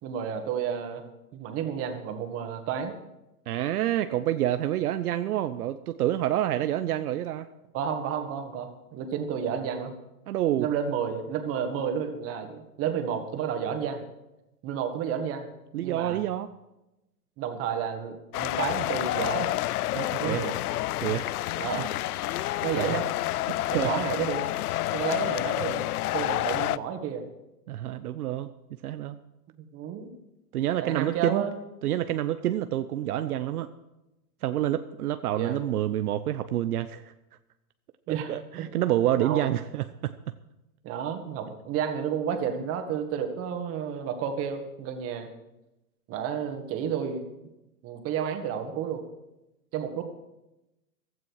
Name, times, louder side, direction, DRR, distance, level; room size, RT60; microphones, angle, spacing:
voice 1, 0.0-1.0 1.3-2.9 7.7-9.9 10.6-14.0 14.6-15.5 15.8-16.2 17.4-19.6 20.0-20.6 21.6-21.9 22.6-23.1 23.7-24.5 24.9-25.9 26.1-27.2 29.6-30.1 30.8-31.6 35.3-35.6 38.1-38.7 39.2-39.5 40.8-45.3 46.1-47.3 47.8-49.0 49.7-50.0, right 8 dB, 30° right, 6 dB, 1.9 m, -31 dB
voice 2, 3.5-7.5 10.3-10.7 15.7-16.5 19.9-20.4 21.0-21.3 22.7-22.9 23.5-23.9 27.7-28.5 28.8-29.2 30.5-31.4 31.8-33.7 34.4-37.1 38.1-40.1, right 12 dB, 70° right, 10 dB, 0.8 m, -28 dB
sound 1, 18.3-26.8, left 16 dB, 70° left, 0.5 m, -29 dB
15.5 x 13.0 x 4.8 m, 0.95 s
hypercardioid pair, 140°, 47 cm